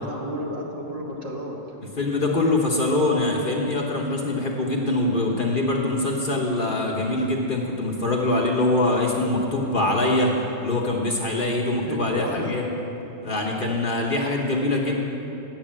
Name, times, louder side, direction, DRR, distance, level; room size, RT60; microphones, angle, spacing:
voice 1, 0.0-1.6 11.9-12.5, equal, 50° right, -2 dB, 1.6 m, -31 dB
voice 2, 2.0-10.3 10.6-12.7 13.2-15.1, left 2 dB, 45° left, -1 dB, 1.0 m, -23 dB
8.9 x 6.5 x 8.6 m, 2.9 s
omnidirectional pair, 1.4 m